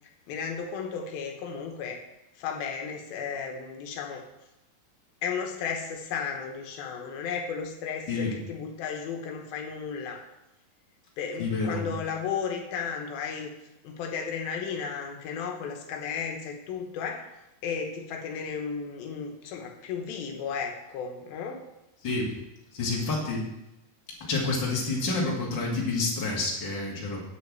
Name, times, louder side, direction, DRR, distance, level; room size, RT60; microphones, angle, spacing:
voice 1, 0.3-2.0 2.4-4.2 5.2-10.2 11.2-13.5 13.8-17.3 17.6-21.6, left 6 dB, 85° left, 2 dB, 2.9 m, -34 dB
voice 2, 11.4-11.9 22.0-22.3 22.7-23.4 24.2-27.2, left 3 dB, 35° left, -3 dB, 2.5 m, -28 dB
8.1 x 6.4 x 7.6 m, 0.92 s
omnidirectional pair, 4.1 m